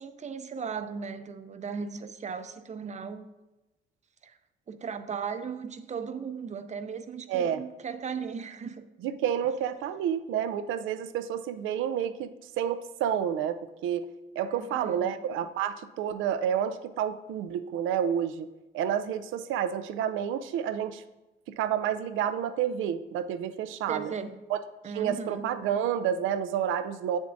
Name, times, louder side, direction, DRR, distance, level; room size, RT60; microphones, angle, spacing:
voice 1, 0.0-3.3 4.2-4.4 4.7-8.9 14.4-15.1 23.9-24.5 24.8-25.5, right 6 dB, 35° right, 10 dB, 0.5 m, -37 dB
voice 2, 7.3-7.6 9.0-12.3 12.6-14.1 14.4-18.5 18.7-21.0 21.6-24.1 24.5-24.6 24.9-27.2, right 9 dB, 85° right, 11 dB, 0.4 m, -29 dB
7.2 x 7.0 x 2.6 m, 1.0 s
cardioid pair, 90°, 20 cm